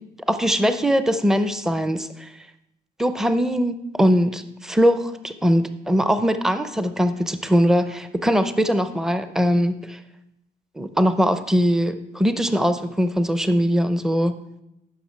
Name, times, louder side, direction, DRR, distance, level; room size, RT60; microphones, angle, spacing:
voice 1, 0.3-2.3 3.0-10.0 10.8-14.4, equal, 5° right, 11 dB, 0.6 m, -21 dB
10.5 x 6.3 x 4.5 m, 0.85 s
cardioid pair, 75°, 18 cm